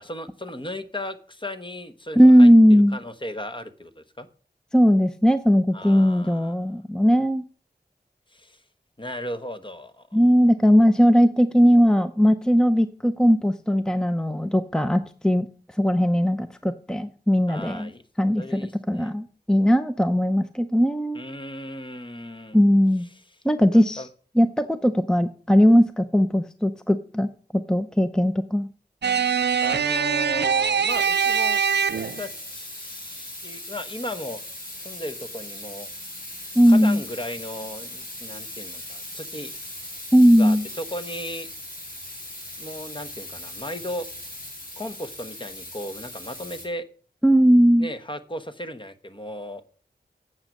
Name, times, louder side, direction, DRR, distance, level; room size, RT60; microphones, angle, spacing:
voice 1, 0.0-4.3 5.7-6.6 8.3-8.6 9.0-10.0 17.5-18.0 18.4-19.1 21.1-22.6 23.7-24.1 29.6-31.6 32.0-34.4 34.8-35.9 36.7-39.5 40.4-41.5 42.6-44.1 44.8-46.9 47.8-49.6, left 1 dB, 30° left, 9 dB, 1.1 m, -36 dB
voice 2, 2.2-3.0 4.7-7.4 10.1-15.5 15.8-17.9 18.2-18.6 18.9-21.2 22.5-23.1 23.4-24.0 24.4-27.3 27.7-28.7 36.6-37.0 40.1-40.6 47.2-47.9, equal, 5° left, 10 dB, 0.6 m, -18 dB
sound 1, 29.0-32.3, right 6 dB, 75° right, 0.5 m, -23 dB
sound 2, 30.9-46.6, left 1 dB, 55° left, 5.9 m, -39 dB
9.0 x 7.5 x 6.5 m, 0.42 s
wide cardioid pair, 70°, 18 cm